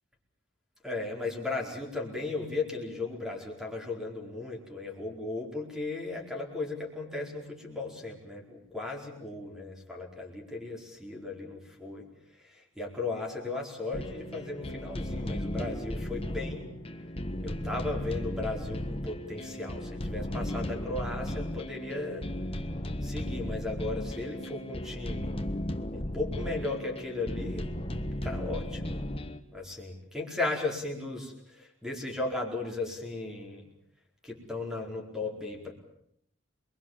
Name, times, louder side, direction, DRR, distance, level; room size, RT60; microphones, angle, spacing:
voice 1, 0.8-12.1 12.4-16.6 17.4-22.2 23.0-25.4 25.9-27.7 28.2-29.0 29.5-33.7 34.2-35.7, left 2 dB, 5° right, 0 dB, 4.7 m, -36 dB
sound 1, 13.9-29.4, left 1 dB, 30° left, 1.4 m, -35 dB
28.0 x 22.0 x 7.5 m, 0.72 s
head